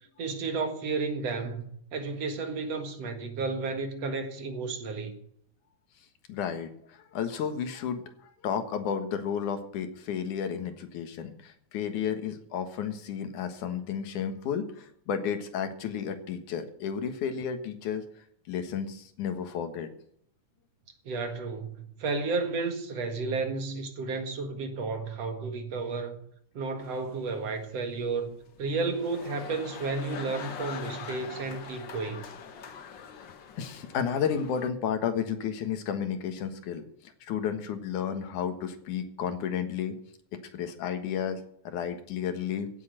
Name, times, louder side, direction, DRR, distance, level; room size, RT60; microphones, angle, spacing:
voice 1, 0.2-5.2 21.1-26.2 26.5-32.3, right 4 dB, 55° right, 2.7 m, -32 dB
voice 2, 6.3-18.0 18.5-19.9 33.6-40.0 40.3-42.7, left 7 dB, 80° left, 2.9 m, -32 dB
sound 1, 26.8-34.7, left 7 dB, 55° left, 1.3 m, -44 dB
16.5 x 8.2 x 6.6 m
omnidirectional pair, 3.5 m